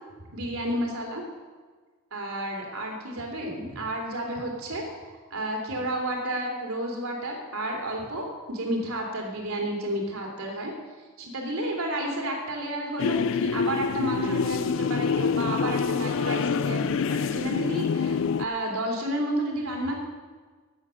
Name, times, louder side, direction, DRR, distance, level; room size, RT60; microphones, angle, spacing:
voice 1, 0.3-1.2 2.1-4.8 5.3-10.7 11.2-19.9, right 1 dB, 75° right, 1 dB, 3.2 m, -31 dB
sound 1, 13.0-18.4, left 5 dB, 60° left, 0.4 m, -26 dB
13.5 x 8.9 x 6.4 m, 1.4 s
head